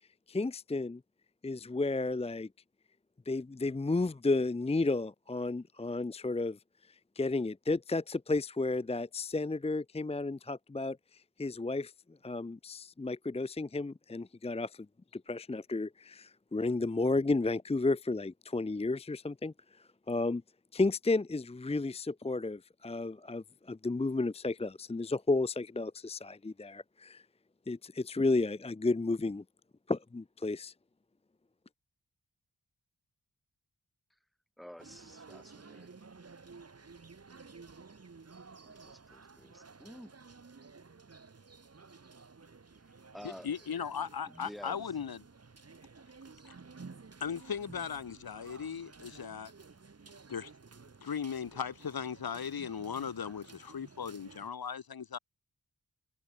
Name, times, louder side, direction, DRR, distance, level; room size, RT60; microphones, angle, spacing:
voice 1, 0.3-1.0 1.4-2.5 3.3-6.6 7.2-11.9 12.2-14.9 15.1-19.5 20.1-20.4 20.7-27.2 27.7-29.4 29.9-30.7, left 3 dB, 15° left, 0.6 m, -32 dB
voice 2, 34.6-35.9 38.6-40.1 43.1-43.5 44.3-44.8, equal, ahead, 2.1 m, -50 dB
sound 1, 34.8-54.5, right 4 dB, 45° right, 1.9 m, -54 dB
voice 3, 43.2-45.2 46.4-46.6 47.2-49.5 50.3-50.5 51.0-55.2, left 7 dB, 80° left, 2.3 m, -38 dB
cardioid pair, 55°, 36 cm